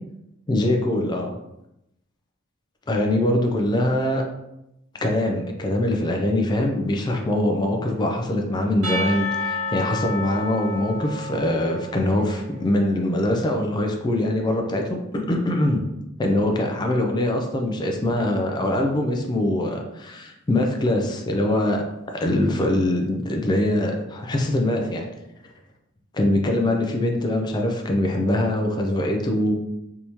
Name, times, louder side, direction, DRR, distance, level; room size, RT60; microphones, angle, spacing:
voice 1, 0.5-1.3 2.9-4.2 5.0-15.8 16.2-21.8 22.1-25.0 26.1-29.5, left 1 dB, 20° left, 2 dB, 0.3 m, -23 dB
Percussion / Church bell, 8.8-12.5, left 2 dB, 75° right, 1.2 m, -30 dB
3.4 x 2.7 x 2.9 m, 0.88 s
head